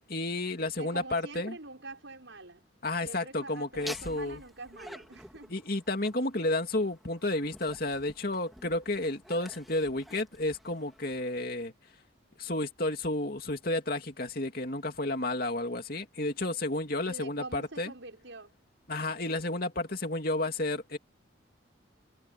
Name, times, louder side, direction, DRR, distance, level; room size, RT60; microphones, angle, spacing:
voice 1, 0.1-1.6 2.8-4.4 5.5-11.7 12.4-17.9 18.9-21.0, left 2 dB, 50° left, 2.8 m, -31 dB
voice 2, 0.8-2.6 3.0-5.5 17.1-18.5, right 2 dB, 75° right, 5.9 m, -45 dB
Laughter, 3.7-11.4, equal, ahead, 3.6 m, -49 dB
head